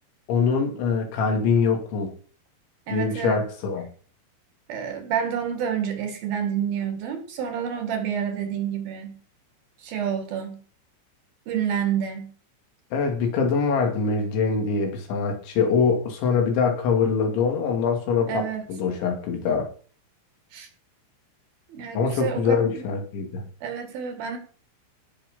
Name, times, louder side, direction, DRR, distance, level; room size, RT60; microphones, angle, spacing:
voice 1, 0.3-2.1 2.9-3.9 12.9-19.7 21.9-23.4, left 5 dB, 80° left, 3 dB, 4.9 m, -23 dB
voice 2, 2.9-3.4 4.7-9.2 9.8-10.6 11.5-12.3 18.3-18.7 20.5-20.7 21.7-22.8 23.6-24.4, right 8 dB, 60° right, 7 dB, 3.2 m, -29 dB
17.5 x 6.1 x 5.5 m, 0.40 s
omnidirectional pair, 5.3 m